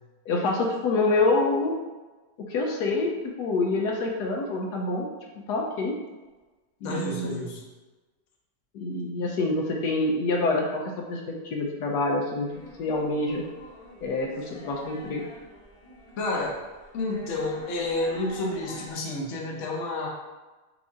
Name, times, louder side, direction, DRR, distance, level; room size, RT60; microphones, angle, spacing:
voice 1, 0.3-1.7 2.5-3.1 3.4-5.1 5.5-6.0 6.8-7.4 8.7-10.8 11.1-12.5 12.8-13.4 14.0-15.2, left 2 dB, 80° left, 0 dB, 1.1 m, -26 dB
voice 2, 6.8-7.6 16.2-16.6 16.9-20.1, left 2 dB, 55° left, -1 dB, 1.0 m, -30 dB
sound 1, 12.5-18.9, equal, 25° left, 0.8 m, -47 dB
5.0 x 2.6 x 3.6 m, 1.2 s
omnidirectional pair, 1.8 m